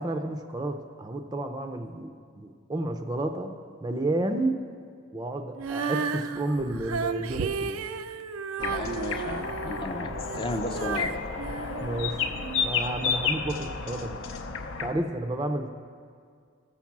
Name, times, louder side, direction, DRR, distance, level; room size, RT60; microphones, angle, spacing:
voice 1, 0.0-3.5 3.8-4.6 5.1-7.8 11.8-12.2 12.6-14.2 14.8-15.7, right 1 dB, 20° right, 6 dB, 0.5 m, -31 dB
Female singing, 5.6-12.6 13.2-13.3, right 5 dB, 80° right, 0.4 m, -33 dB
sound 1, 8.6-14.9, left 5 dB, 65° left, 0.6 m, -31 dB
voice 2, 8.6-11.1, left 1 dB, 25° left, 6 dB, 0.6 m, -34 dB
13.0 x 7.3 x 5.9 m, 2.1 s
head